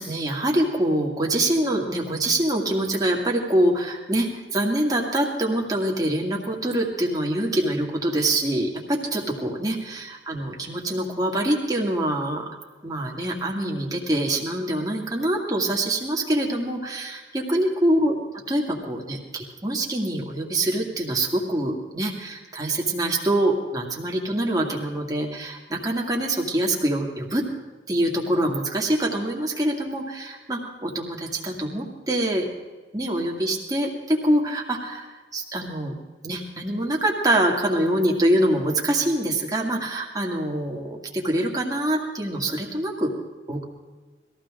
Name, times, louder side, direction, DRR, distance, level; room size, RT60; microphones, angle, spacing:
voice 1, 0.0-12.5 12.8-18.1 18.5-27.4 27.9-32.5 32.9-35.9 36.2-43.1 43.5-43.6, right 1 dB, 20° right, -1 dB, 2.2 m, -25 dB
20.5 x 15.0 x 3.8 m, 1.3 s
head